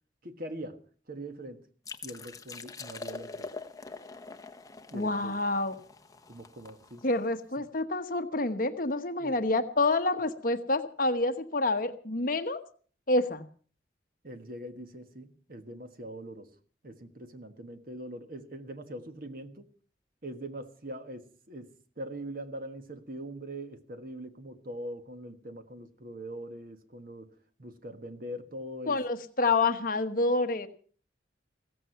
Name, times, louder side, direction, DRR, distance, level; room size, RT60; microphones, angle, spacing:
voice 1, 0.2-0.8 1.1-1.6 2.0-3.5 4.9-5.4 6.3-7.0 7.6-7.7 9.2-9.5 14.2-16.5 16.8-19.7 20.2-27.3 27.6-29.0, right 1 dB, 50° right, 9 dB, 1.4 m, -42 dB
sound 1, 1.8-7.4, left 3 dB, 20° left, 0.9 m, -44 dB
voice 2, 4.9-5.7 7.0-12.6 13.1-13.5 28.9-30.7, left 2 dB, 50° left, 9 dB, 1.1 m, -28 dB
16.0 x 14.5 x 5.7 m, 0.43 s
head